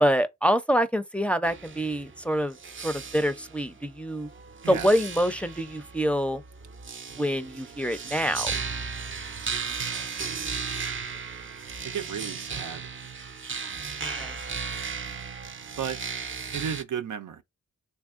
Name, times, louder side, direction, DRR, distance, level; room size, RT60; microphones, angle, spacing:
voice 1, 0.0-4.3 4.7-6.4 7.2-8.5 14.0-14.3, equal, 5° left, 0.5 m, -26 dB
sound 1, 1.4-16.8, right 5 dB, 40° right, 0.6 m, -36 dB
voice 2, 9.8-10.3 11.8-12.9 15.8-16.0 16.5-17.4, right 8 dB, 85° right, 0.6 m, -34 dB
3.5 x 3.3 x 2.4 m
cardioid pair, 55°, 30 cm